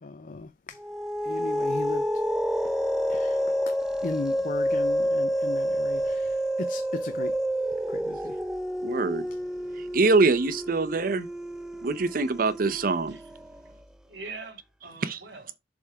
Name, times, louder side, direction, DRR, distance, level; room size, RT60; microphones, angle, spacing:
voice 1, 0.0-0.8 1.2-2.1 2.6-2.7 3.1-7.4 7.9-8.4 9.3-9.4, left 3 dB, 50° left, 0.5 m, -37 dB
sound 1, 0.8-13.6, equal, 5° right, 0.5 m, -29 dB
voice 2, 8.8-9.2 9.9-11.3 11.8-13.1 15.0-15.2, right 3 dB, 55° right, 0.7 m, -24 dB
voice 3, 14.0-15.6, right 3 dB, 75° right, 2.4 m, -43 dB
7.0 x 3.6 x 4.7 m
head